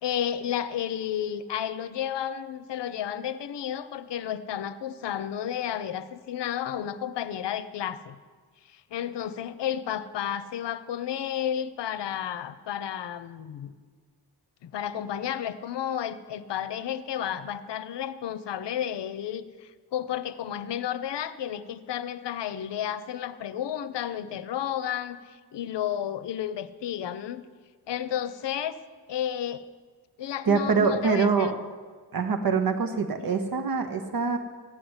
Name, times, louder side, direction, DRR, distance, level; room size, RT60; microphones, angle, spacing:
voice 1, 0.0-8.2 8.7-13.7 14.6-27.5 27.9-28.8 29.1-29.6 30.2-31.5 33.2-33.3, left 10 dB, 80° left, 14 dB, 0.7 m, -32 dB
voice 2, 30.5-31.5 32.1-34.4, right 5 dB, 55° right, 7 dB, 1.0 m, -24 dB
14.5 x 9.7 x 8.0 m, 1.5 s
wide cardioid pair, 155°, 41 cm